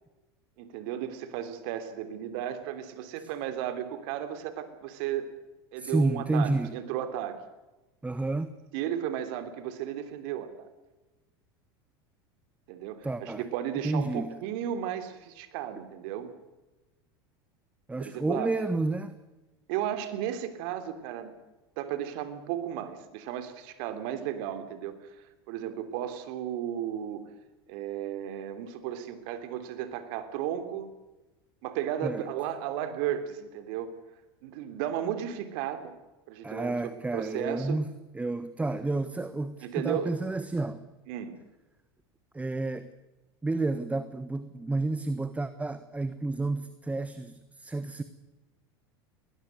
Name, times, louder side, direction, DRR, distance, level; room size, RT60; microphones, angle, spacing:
voice 1, 0.6-5.3 5.7-7.4 8.7-10.7 12.7-16.3 18.0-18.5 19.7-21.3 21.8-27.2 27.7-30.9 31.6-33.9 34.4-35.9 36.3-36.7 37.1-37.8 39.6-40.2 41.1-41.3, right 10 dB, 65° right, 10 dB, 3.2 m, -34 dB
voice 2, 5.8-6.8 8.0-8.5 13.0-13.4 13.8-14.4 17.9-19.1 32.0-32.3 36.4-40.8 42.3-42.9 43.4-48.0, right 2 dB, 10° right, 12 dB, 1.3 m, -30 dB
20.5 x 20.5 x 7.9 m, 1.1 s
hypercardioid pair, 85°, 13 cm